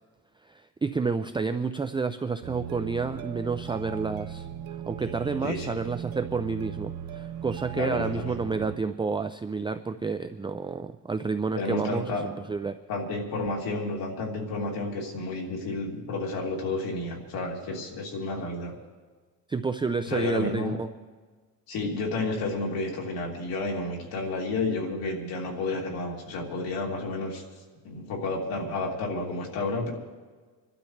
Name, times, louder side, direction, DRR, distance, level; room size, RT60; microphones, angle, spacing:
voice 1, 0.5-4.5 4.8-12.7 19.5-20.9, right 4 dB, 15° right, 9 dB, 0.4 m, -30 dB
sound 1, 2.4-8.8, right 9 dB, 80° right, 0.9 m, -38 dB
voice 2, 5.4-5.8 7.7-8.4 11.5-12.3 12.9-18.7 20.0-20.7 21.7-27.4 27.8-29.9, left 2 dB, 85° left, -1 dB, 3.3 m, -31 dB
26.5 x 12.0 x 3.3 m, 1.4 s
cardioid pair, 115°, 35 cm